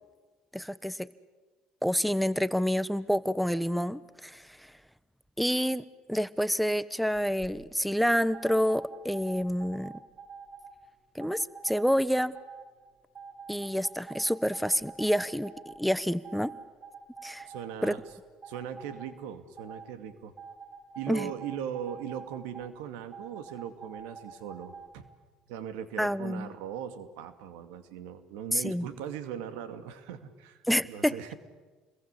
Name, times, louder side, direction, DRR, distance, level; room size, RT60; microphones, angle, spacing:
voice 1, 0.5-1.1 1.8-4.7 5.4-9.9 11.1-12.3 13.5-16.5 17.2-17.5 17.8-18.0 21.1-21.3 26.0-26.5 28.5-28.9 30.7-31.1, equal, ahead, 15 dB, 1.0 m, -28 dB
sound 1, 7.1-7.5 8.3-10.7 11.2-11.9 12.3-12.7 13.2-15.8 16.2-18.1 18.4-19.1 19.6-19.9 20.4-22.6 23.1-24.9, right 5 dB, 35° right, 7.8 m, -46 dB
voice 2, 17.5-18.0 18.4-20.3 21.0-25.1 25.5-30.6 30.9-31.3, right 9 dB, 80° right, 10 dB, 2.4 m, -39 dB
28.5 x 22.0 x 8.4 m, 1.3 s
hypercardioid pair, 70°, 3 cm